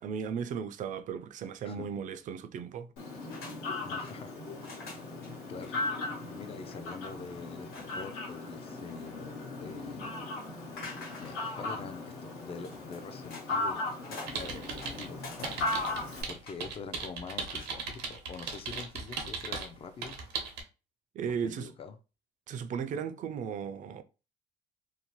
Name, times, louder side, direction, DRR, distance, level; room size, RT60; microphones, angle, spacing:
voice 1, 0.0-2.9 21.1-21.7 22.5-24.0, right 7 dB, 50° right, 0.4 m, -36 dB
Fowl, 3.0-16.2, left 2 dB, 85° left, 1.2 m, -38 dB
sound 1, 3.3-3.6 3.8-4.2 4.6-5.3 5.6-5.7 6.1-6.2 6.5-6.8 7.7-8.2 8.7-9.4 10.8-11.7 12.6-13.5 13.8-14.4 14.8-16.7 17.4-17.7, left 3 dB, 65° left, 1.3 m, -46 dB
voice 2, 3.8-4.3 5.0-5.1 5.5-5.9 6.2-10.1 10.6-13.8 14.1-15.9 16.2-20.2 21.3-22.0, left 5 dB, 35° left, 0.4 m, -45 dB
sound 2, 14.3-15.1 15.4-19.7 20.0-20.6, right 5 dB, 90° right, 0.7 m, -37 dB
2.7 x 2.0 x 2.9 m
cardioid pair, 110°, 17 cm